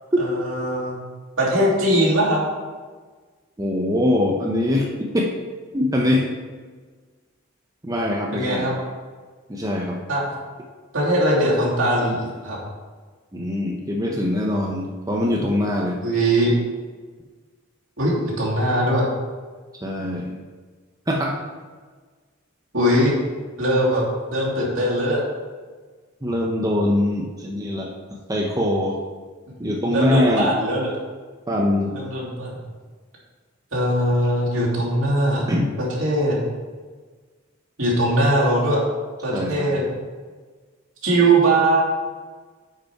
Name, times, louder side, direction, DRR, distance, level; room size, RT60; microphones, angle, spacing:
voice 1, 0.2-1.0 1.4-2.4 8.3-8.7 10.1-10.2 10.9-12.6 16.0-16.6 18.0-19.1 22.7-23.2 23.6-24.0 24.3-25.2 29.9-30.9 31.9-32.5 33.7-35.4 35.8-36.4 37.8-38.8 39.2-39.8 41.0-41.8, right 1 dB, 70° right, -6 dB, 2.8 m, -20 dB
voice 2, 3.6-4.9 5.1-5.3 5.7-6.3 7.8-8.7 9.5-10.0 13.3-16.0 19.8-20.3 21.1-21.4 26.2-27.9 28.3-29.0 29.6-30.5 31.5-31.9 35.5-35.7 39.3-39.7, left 1 dB, 15° right, -1 dB, 0.7 m, -22 dB
9.2 x 5.4 x 4.6 m, 1.5 s
head